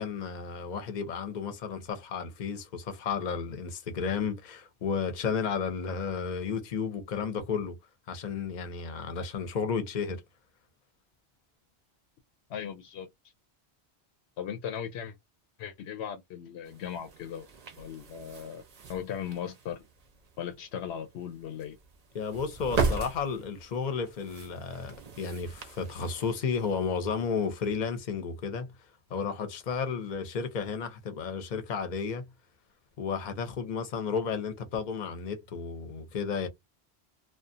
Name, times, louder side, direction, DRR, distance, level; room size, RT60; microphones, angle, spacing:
voice 1, 0.0-7.8 8.1-10.2 22.1-28.7 29.1-32.3 33.0-36.5, left 5 dB, 50° left, 0.7 m, -33 dB
voice 2, 12.5-13.1 14.4-15.1 15.6-17.5 17.8-18.6 18.9-19.8 20.4-21.8, left 8 dB, 80° left, 0.8 m, -37 dB
sound 1, 16.6-27.8, right 4 dB, 45° right, 0.6 m, -38 dB
2.4 x 2.3 x 2.5 m
omnidirectional pair, 1.1 m